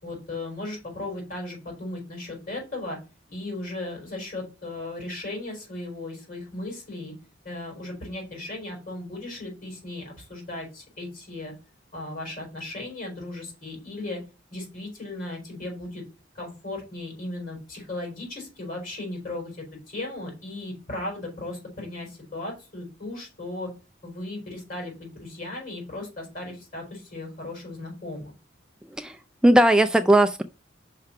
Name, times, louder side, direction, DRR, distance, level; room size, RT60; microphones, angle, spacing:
voice 1, 0.0-3.0 3.3-7.1 7.4-11.5 11.9-14.2 14.5-16.0 16.3-23.7 24.0-28.3, left 2 dB, 50° left, 4.5 m, -36 dB
voice 2, 29.0-30.4, right 1 dB, 5° right, 0.3 m, -18 dB
5.7 x 5.1 x 5.7 m
head